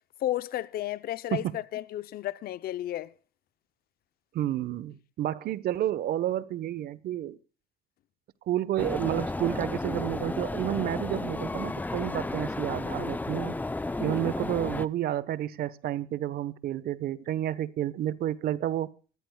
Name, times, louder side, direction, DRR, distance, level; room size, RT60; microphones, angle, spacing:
voice 1, 0.2-3.1, left 13 dB, 65° left, 0.7 m, -32 dB
voice 2, 4.3-7.4 8.5-13.6 14.0-18.9, right 12 dB, 65° right, 1.1 m, -30 dB
sound 1, 8.8-14.9, left 2 dB, 10° left, 0.6 m, -33 dB
23.5 x 14.0 x 2.3 m
cardioid pair, 110°, 17 cm